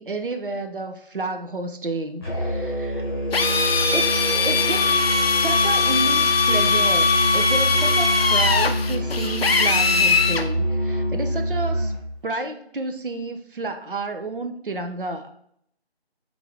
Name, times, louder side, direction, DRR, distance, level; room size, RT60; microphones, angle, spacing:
voice 1, 0.0-3.1 3.9-4.1 4.4-11.9 12.2-15.3, right 2 dB, 55° right, 7 dB, 0.6 m, -31 dB
Musical instrument, 2.2-12.1, equal, 20° left, 1.1 m, -26 dB
Drill, 3.3-10.5, left 4 dB, 65° left, 0.5 m, -20 dB
5.9 x 2.6 x 3.2 m, 0.69 s
figure-of-eight pair, 175°, 33 cm